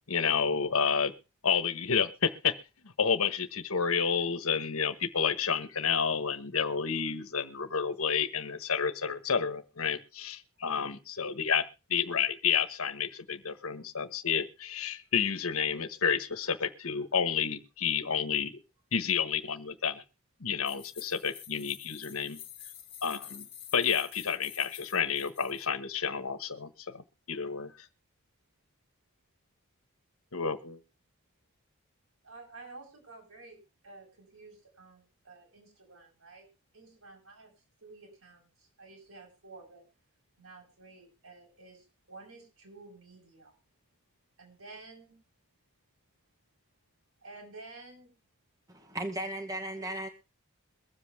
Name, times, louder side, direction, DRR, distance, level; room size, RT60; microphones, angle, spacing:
voice 1, 0.1-1.1 1.4-2.5 3.0-11.6 11.9-18.5 18.9-20.0 20.4-22.4 23.0-23.4 23.7-27.7 30.3-30.8, left 6 dB, 75° left, 10 dB, 1.3 m, -30 dB
sound 1, 20.7-25.7, left 10 dB, 25° left, 1.1 m, -48 dB
voice 2, 32.2-33.6 33.8-36.5 36.7-37.5 37.8-39.8 40.4-43.6 44.4-45.1 47.2-48.1 49.8-50.1, right 3 dB, 70° right, 0 dB, 6.1 m, -51 dB
voice 3, 48.7-50.1, right 1 dB, 15° right, 5 dB, 1.0 m, -36 dB
23.0 x 7.7 x 3.5 m, 0.31 s
head